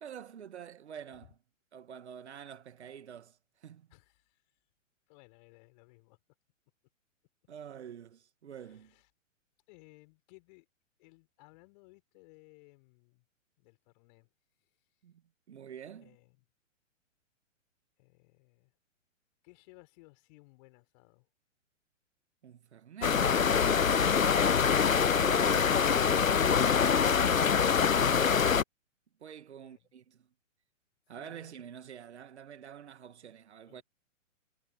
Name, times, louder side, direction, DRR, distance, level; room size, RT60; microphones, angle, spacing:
voice 1, 0.0-1.3 1.7-3.9 7.5-8.9 15.0-15.2 15.5-16.2 22.4-23.3 25.2-26.5 29.2-30.3 31.1-33.8, right 8 dB, 55° right, 2.1 m, -47 dB
voice 2, 3.9-4.4 5.1-6.2 8.5-9.1 9.7-10.7 11.0-13.2 13.6-14.3 16.0-16.5 18.0-18.7 19.4-21.3 29.6-29.9 31.2-31.6 33.7-33.8, left 27 dB, 35° left, 5.1 m, -60 dB
sound 1, 23.0-28.6, left 6 dB, 85° left, 0.7 m, -25 dB
figure-of-eight pair, 120°, 39 cm